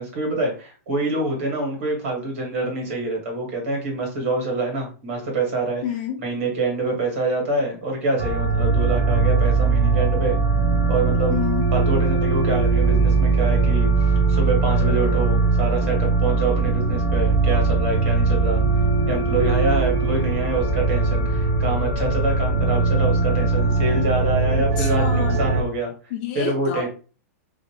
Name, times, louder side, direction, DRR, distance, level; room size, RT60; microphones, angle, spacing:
voice 1, 0.0-5.8 6.2-10.4 10.9-11.3 11.7-13.9 14.3-18.6 19.1-25.9 26.3-26.9, right 2 dB, 50° right, 0 dB, 1.6 m, -26 dB
voice 2, 5.8-6.2 11.3-11.7 24.6-25.5 26.1-26.9, left 9 dB, 35° left, 2 dB, 0.3 m, -29 dB
sound 1, 8.2-25.6, right 4 dB, 30° right, 0.6 m, -20 dB
2.8 x 2.5 x 2.9 m, 0.37 s
supercardioid pair, 170°, 9 cm